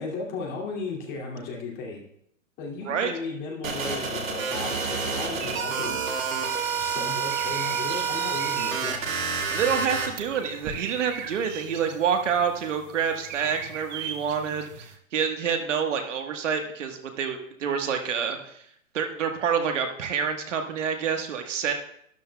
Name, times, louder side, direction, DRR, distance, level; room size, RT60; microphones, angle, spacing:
voice 1, 0.0-2.0 2.6-6.2 6.8-9.2 11.9-12.0, left 4 dB, 25° left, -1 dB, 2.6 m, -35 dB
sound 1, 3.6-10.1, right 6 dB, 85° right, 2.1 m, -28 dB
sound 2, 5.4-15.0, right 8 dB, 35° right, 1.0 m, -41 dB
voice 2, 9.5-18.6 18.9-21.7, right 7 dB, 65° right, 5 dB, 1.5 m, -27 dB
12.5 x 12.0 x 2.3 m, 0.71 s
hypercardioid pair, 145°, 39 cm